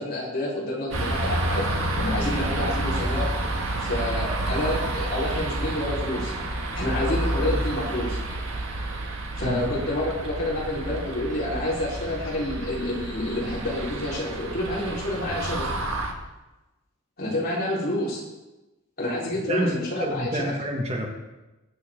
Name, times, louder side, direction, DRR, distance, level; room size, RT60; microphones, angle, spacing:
voice 1, 0.0-3.3 3.8-6.3 6.7-8.2 9.4-15.7 17.2-18.2 19.0-20.5, left 1 dB, 45° left, -6 dB, 4.3 m, -28 dB
sound 1, 0.9-16.1, right 1 dB, 65° right, 1.7 m, -29 dB
voice 2, 20.0-21.1, equal, 30° right, 0 dB, 1.6 m, -27 dB
22.0 x 7.9 x 3.8 m, 1.1 s
head